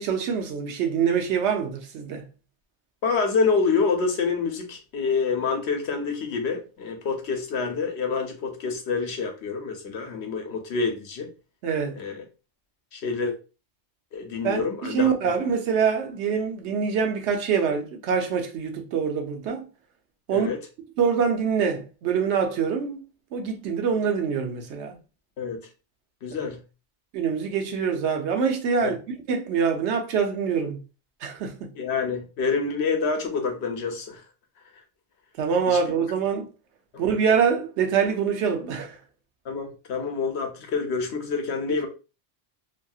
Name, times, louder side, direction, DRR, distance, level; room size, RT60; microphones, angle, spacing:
voice 1, 0.0-2.2 11.6-12.0 14.4-19.6 20.3-20.5 21.0-23.0 23.3-25.0 27.1-29.0 29.3-30.8 31.2-31.7 35.4-36.5 37.0-39.0, right 6 dB, 90° right, 0.9 m, -25 dB
voice 2, 3.0-11.3 12.0-12.2 12.9-13.3 14.1-15.1 20.3-20.6 25.4-25.7 26.2-26.6 28.8-28.9 31.7-34.2 35.7-35.8 36.9-37.0 39.4-41.9, left 5 dB, 75° left, 1.0 m, -27 dB
2.7 x 2.7 x 2.3 m
omnidirectional pair, 1.1 m